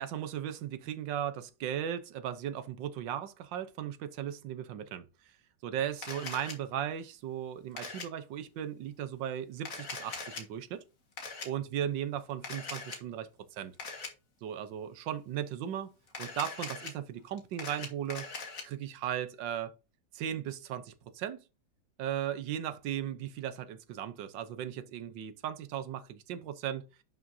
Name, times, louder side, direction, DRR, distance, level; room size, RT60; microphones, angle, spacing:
voice 1, 0.0-5.0 5.6-10.8 11.4-13.7 14.4-15.9 16.2-18.2 18.6-19.7 20.1-21.4 22.0-26.8, right 10 dB, 80° right, 1.6 m, -37 dB
Camera, 6.0-6.5 7.8-8.1 9.6-10.4 11.2-11.5 12.4-13.0 13.8-14.1 16.1-16.9 17.4-18.6, left 4 dB, 45° left, 2.0 m, -41 dB
11.0 x 6.1 x 2.7 m
omnidirectional pair, 2.0 m